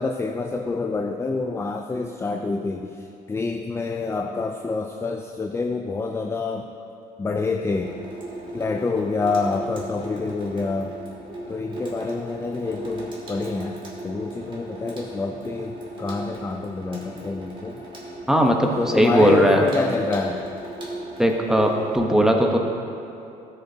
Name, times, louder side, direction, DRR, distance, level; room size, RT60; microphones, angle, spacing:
voice 1, 0.0-3.0 3.3-6.7 7.2-7.9 8.5-11.0 11.5-17.8 18.8-20.5, left 3 dB, 15° left, 4 dB, 0.4 m, -27 dB
Water tap faucet / Sink (filling or washing), 7.7-22.0, right 1 dB, 30° right, 2.2 m, -37 dB
voice 2, 18.3-19.6 21.2-22.6, right 1 dB, 5° right, 1 dB, 0.9 m, -18 dB
14.0 x 6.6 x 2.7 m, 2.7 s
cardioid pair, 110°, 17 cm